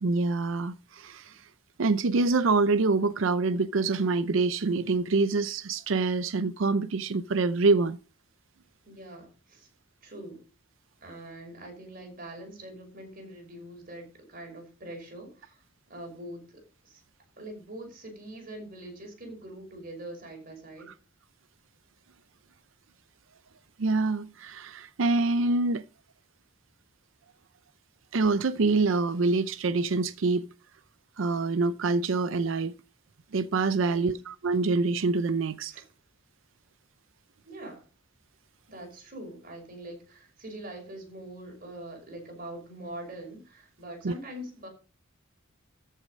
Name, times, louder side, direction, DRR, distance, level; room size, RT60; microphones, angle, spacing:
voice 1, 0.0-1.5 1.8-8.0 23.8-25.8 28.1-30.5 31.2-32.7 33.3-35.7 44.0-44.1, right 3 dB, 70° right, 0.6 m, -26 dB
voice 2, 8.8-9.7 10.0-10.4 11.0-17.0 17.4-20.9 33.8-34.2 35.7-35.9 37.4-37.8 38.7-44.7, right 1 dB, 45° right, 5.6 m, -43 dB
14.0 x 6.4 x 5.2 m
head